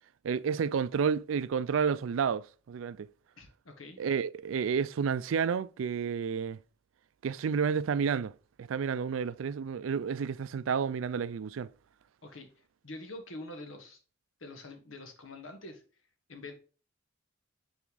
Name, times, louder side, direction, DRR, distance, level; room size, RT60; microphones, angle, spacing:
voice 1, 0.2-3.1 4.0-6.6 7.2-8.3 8.6-11.7, right 6 dB, 80° right, 0.4 m, -30 dB
voice 2, 3.4-4.0 12.2-12.5 12.8-14.0 14.4-15.8 16.3-16.5, left 2 dB, 85° left, 1.5 m, -45 dB
5.9 x 4.3 x 3.9 m
head